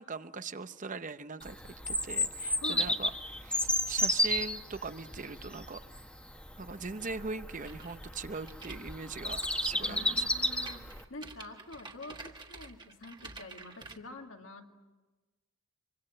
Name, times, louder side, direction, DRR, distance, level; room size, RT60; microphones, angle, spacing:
voice 1, 0.0-1.6 1.9-5.8 6.6-10.3, right 4 dB, 35° right, 11 dB, 0.8 m, -40 dB
Bird vocalization bird call bird song, 1.4-11.0, left 1 dB, 5° left, 1.4 m, -33 dB
voice 2, 2.6-2.9 9.8-14.7, left 2 dB, 70° left, 3 dB, 2.2 m, -46 dB
sound 1, 7.6-14.0, right 3 dB, 20° right, 1.5 m, -49 dB
25.0 x 25.0 x 7.7 m, 1.2 s
head